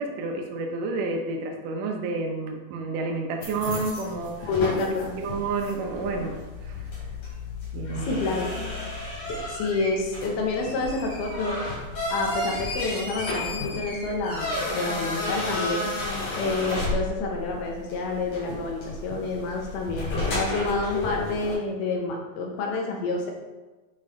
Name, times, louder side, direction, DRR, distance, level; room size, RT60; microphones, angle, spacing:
voice 1, 0.0-4.5 5.2-6.9 7.7-8.2, right 3 dB, 75° right, 2 dB, 2.1 m, -30 dB
sound 1, 3.4-21.5, left 2 dB, 60° left, 3.7 m, -32 dB
voice 2, 4.4-5.1 8.0-8.5 9.3-11.6 12.1-15.9 16.3-23.3, left 3 dB, 80° left, 0 dB, 3.0 m, -28 dB
8.8 x 5.0 x 3.2 m, 1.2 s
omnidirectional pair, 4.4 m